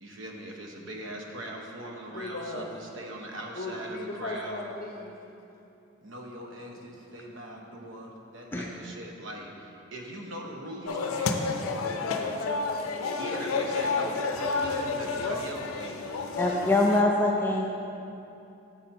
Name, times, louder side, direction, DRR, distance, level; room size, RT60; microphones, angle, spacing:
voice 1, 0.0-4.6 6.0-11.3 13.1-16.1, right 1 dB, 65° right, 0 dB, 0.8 m, -41 dB
voice 2, 2.1-2.7 3.5-5.2 11.6-14.7, left 2 dB, 45° left, 1 dB, 0.6 m, -38 dB
sound 1, 10.9-17.0, left 4 dB, 85° left, 0.5 m, -30 dB
voice 3, 16.4-17.7, left 2 dB, 10° left, -1 dB, 0.3 m, -24 dB
7.2 x 4.3 x 5.3 m, 2.8 s
head